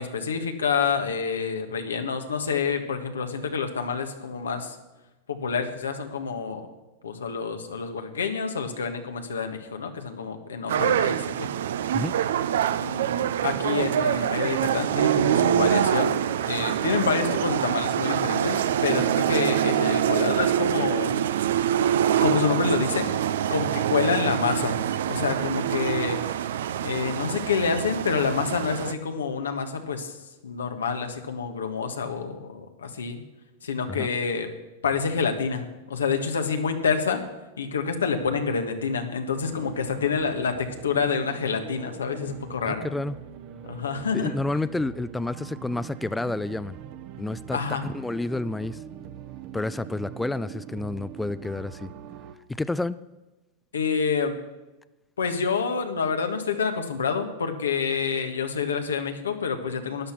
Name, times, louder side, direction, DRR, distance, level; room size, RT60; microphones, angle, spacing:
voice 1, 0.0-4.8 5.3-6.7 7.0-11.5 12.8-16.1 16.5-21.2 22.2-24.8 25.1-26.4 26.8-30.2 30.4-33.2 33.6-34.5 34.8-37.2 37.6-42.9 43.7-44.3 47.5-47.8 53.7-54.3 55.2-60.1, left 5 dB, 90° left, 6 dB, 1.5 m, -28 dB
sound 1, 10.7-28.9, right 10 dB, 75° right, 0.6 m, -25 dB
sound 2, 39.4-52.4, right 9 dB, 50° right, 1.1 m, -42 dB
voice 2, 42.6-43.2 44.1-46.8 47.2-47.6 47.9-48.8 49.5-51.9 52.5-53.0, left 2 dB, 10° left, 16 dB, 0.4 m, -29 dB
12.5 x 10.0 x 6.0 m, 1.1 s
hypercardioid pair, 105°, 0 cm